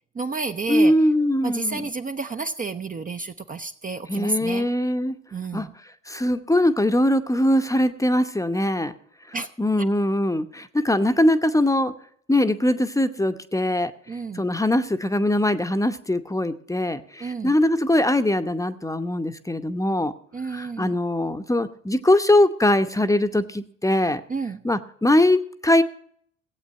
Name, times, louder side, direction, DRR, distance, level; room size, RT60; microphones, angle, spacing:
voice 1, 0.2-0.9 1.4-4.7 5.3-5.7 9.3-9.5 14.1-14.5 17.2-17.5 20.3-20.9 24.3-24.6, right 3 dB, 20° right, 6 dB, 0.7 m, -30 dB
voice 2, 0.7-1.9 4.1-5.2 5.5-5.7 6.1-8.9 9.3-11.9 12.3-13.9 14.3-20.1 20.4-24.2 24.6-25.8, left 1 dB, 10° left, 9 dB, 0.9 m, -21 dB
16.5 x 8.3 x 5.5 m, 0.63 s
figure-of-eight pair, 50°, 37 cm